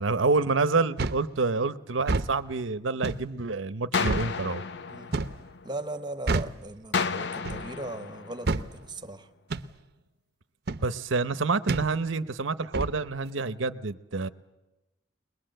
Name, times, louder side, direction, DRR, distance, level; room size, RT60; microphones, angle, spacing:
voice 1, 0.0-4.6 10.8-14.3, right 3 dB, 90° right, 0.8 m, -28 dB
sound 1, 1.0-1.3 2.0-2.3 3.0-3.3 4.0-4.3 5.1-5.4 6.3-6.6 7.4-7.7 8.5-8.7 9.5-9.7 10.7-10.9 11.7-11.9 12.7-13.0, right 3 dB, 55° right, 0.7 m, -28 dB
sound 2, 3.9-6.0 6.9-9.0, left 5 dB, 65° left, 0.7 m, -32 dB
voice 2, 5.6-9.3, right 2 dB, 25° right, 1.1 m, -38 dB
22.0 x 21.5 x 7.8 m
head